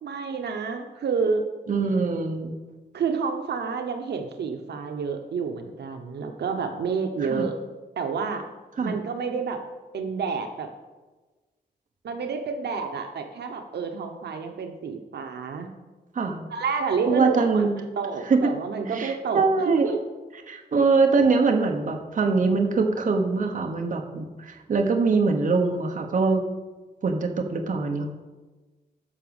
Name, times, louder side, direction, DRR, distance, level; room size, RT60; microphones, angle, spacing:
voice 1, 0.0-1.4 2.9-7.5 8.0-8.4 8.8-9.6 9.9-10.7 12.0-15.7 16.5-17.7 18.0-20.0, right 5 dB, 90° right, 5 dB, 1.0 m, -29 dB
voice 2, 1.7-2.5 7.3-7.5 8.8-8.9 16.1-16.4 17.1-17.8 18.3-18.5 18.9-19.9 20.5-26.5 27.0-28.1, right 4 dB, 50° right, 4 dB, 1.2 m, -23 dB
10.0 x 6.2 x 7.0 m, 1.3 s
wide cardioid pair, 140°, 17 cm